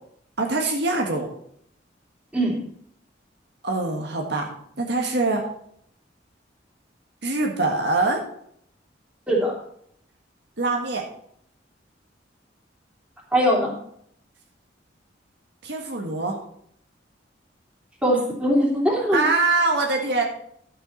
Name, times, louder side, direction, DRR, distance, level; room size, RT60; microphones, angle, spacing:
voice 1, 0.4-1.3 3.6-4.5 4.8-5.4 7.2-8.2 10.6-11.0 15.6-16.4 19.1-20.2, right 3 dB, 65° right, 1 dB, 1.7 m, -23 dB
voice 2, 13.3-13.7 18.0-19.2, equal, 5° right, -3 dB, 3.1 m, -21 dB
11.5 x 7.8 x 4.1 m, 0.67 s
head